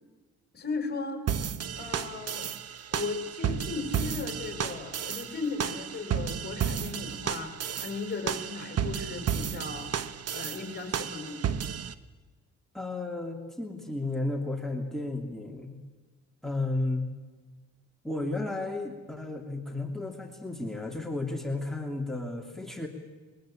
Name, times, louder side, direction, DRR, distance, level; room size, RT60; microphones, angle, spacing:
voice 1, 0.5-1.2 1.7-2.5 2.9-9.9 10.3-11.4, left 4 dB, 35° left, 6 dB, 4.7 m, -36 dB
sound 1, 1.3-11.9, right 8 dB, 55° right, 1.2 m, -33 dB
voice 2, 12.7-15.8 16.4-17.1 18.0-22.9, left 2 dB, ahead, 4 dB, 3.0 m, -33 dB
22.0 x 21.0 x 8.7 m, 1.3 s
cardioid pair, 90°, 30 cm